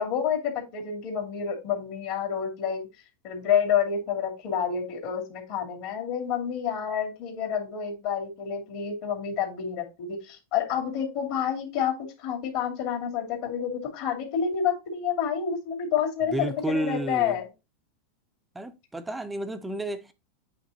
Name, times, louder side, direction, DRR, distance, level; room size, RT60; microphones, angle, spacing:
voice 1, 0.0-2.9 3.2-17.5, left 8 dB, 55° left, 2.6 m, -29 dB
voice 2, 16.3-17.4 18.5-20.1, right 1 dB, 5° right, 0.7 m, -31 dB
8.5 x 3.3 x 4.1 m
supercardioid pair, 145°, 0 cm